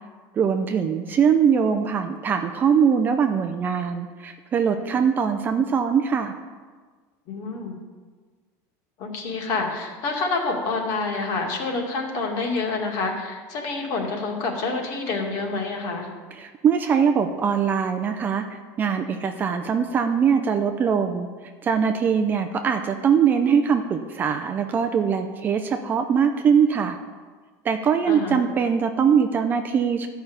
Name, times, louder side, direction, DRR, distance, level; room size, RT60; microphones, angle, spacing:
voice 1, 0.3-6.3 16.3-18.4 18.8-21.3 21.6-27.0 27.6-30.1, right 7 dB, 20° right, 7 dB, 0.5 m, -22 dB
voice 2, 7.3-7.8 9.0-16.1 28.1-28.4, left 3 dB, 45° left, 1 dB, 2.2 m, -27 dB
13.0 x 5.7 x 8.0 m, 1.5 s
cardioid pair, 170°, 9 cm